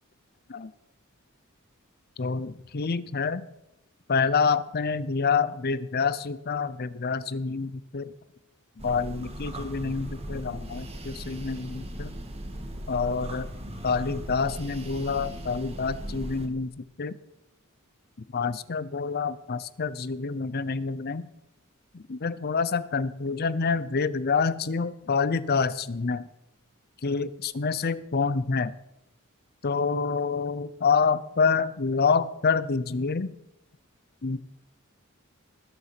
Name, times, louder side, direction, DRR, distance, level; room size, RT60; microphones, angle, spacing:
voice 1, 2.2-3.5 4.1-8.1 8.8-12.1 12.9-13.5 13.8-17.2 18.3-21.3 21.9-26.3 27.0-28.8 29.6-33.4 34.2-34.4, left 5 dB, 50° left, 16 dB, 0.6 m, -27 dB
sound 1, 8.8-16.5, equal, 30° right, 1.6 m, -38 dB
20.0 x 6.9 x 5.9 m, 0.87 s
head